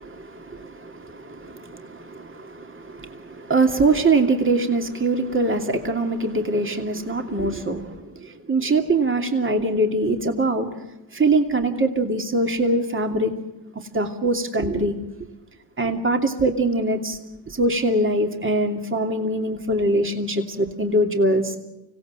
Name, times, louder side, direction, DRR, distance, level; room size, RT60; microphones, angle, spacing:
voice 1, 0.0-10.7 11.1-13.3 13.9-14.9 15.8-17.2 17.5-21.5, right 2 dB, 25° right, 4 dB, 2.7 m, -23 dB
25.5 x 17.0 x 7.8 m, 0.98 s
supercardioid pair, 60°, 49 cm